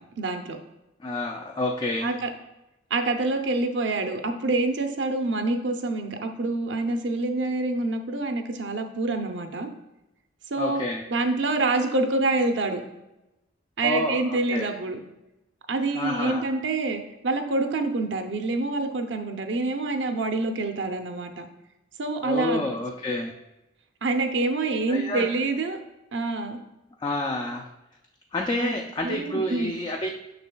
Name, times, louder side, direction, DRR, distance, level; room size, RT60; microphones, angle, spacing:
voice 1, 0.2-0.6 2.0-2.3 2.9-9.7 10.5-10.8 11.1-12.8 13.8-15.0 15.7-21.5 22.0-22.7 24.0-25.8 26.1-26.6 28.6-28.7 29.0-29.7, right 2 dB, 65° right, 5 dB, 0.6 m, -26 dB
voice 2, 1.0-2.1 10.6-11.0 13.8-14.7 15.9-16.5 22.2-23.3 24.9-25.3 27.0-27.7 28.3-30.1, left 1 dB, 25° left, 2 dB, 0.4 m, -29 dB
6.7 x 6.2 x 2.3 m, 0.96 s
head